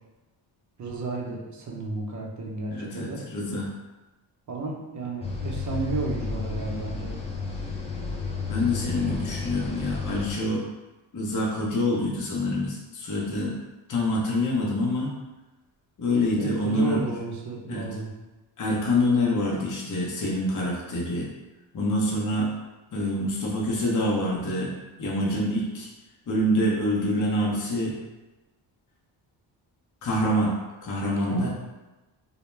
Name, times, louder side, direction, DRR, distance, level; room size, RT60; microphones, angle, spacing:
voice 1, 0.8-3.2 4.5-7.2 16.4-18.1 31.2-31.5, right 3 dB, 35° right, -1 dB, 0.7 m, -33 dB
voice 2, 2.7-3.7 8.5-10.6 11.1-13.5 13.9-15.1 16.0-17.1 17.7-17.8 18.6-21.3 21.7-22.5 22.9-24.7 25.0-25.9 26.3-27.9 30.0-30.5 30.8-31.5, left 1 dB, 40° left, -4 dB, 0.7 m, -26 dB
sound 1, 5.2-10.4, left 4 dB, 15° left, 0.3 m, -32 dB
2.2 x 2.1 x 3.1 m, 1.1 s
cardioid pair, 75°, 48 cm